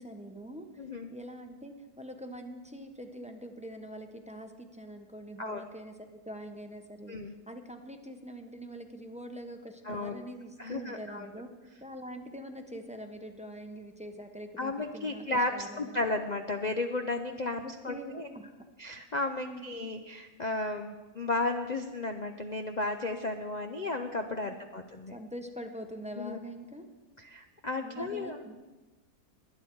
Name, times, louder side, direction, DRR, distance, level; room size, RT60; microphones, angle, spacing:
voice 1, 0.0-0.7 1.1-7.2 7.5-11.5 11.8-16.2 17.6-18.5 19.4-19.8 24.4-24.6 25.1-26.8 27.8-28.6, equal, 5° right, 5 dB, 0.6 m, -44 dB
voice 2, 0.8-1.1 5.4-5.6 7.1-7.3 9.8-10.2 10.6-11.3 14.6-18.3 18.8-25.2 26.2-26.4 27.2-28.4, left 2 dB, 80° left, 6 dB, 0.4 m, -34 dB
21.0 x 8.9 x 4.6 m, 1.2 s
omnidirectional pair, 1.7 m